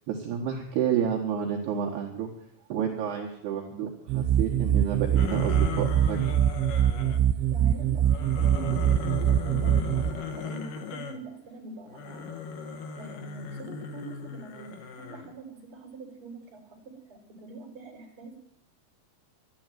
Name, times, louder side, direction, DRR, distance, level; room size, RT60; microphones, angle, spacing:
voice 1, 0.1-2.3 2.7-6.4, right 8 dB, 70° right, -1 dB, 3.2 m, -30 dB
sound 1, 4.1-10.1, right 10 dB, 90° right, 3.1 m, -24 dB
sound 2, 5.2-7.2 8.0-11.2 11.9-15.3, left 6 dB, 65° left, 2.3 m, -37 dB
voice 2, 7.5-12.4 13.0-18.4, right 3 dB, 30° right, 0 dB, 4.5 m, -44 dB
12.0 x 11.0 x 9.1 m, 0.72 s
omnidirectional pair, 5.3 m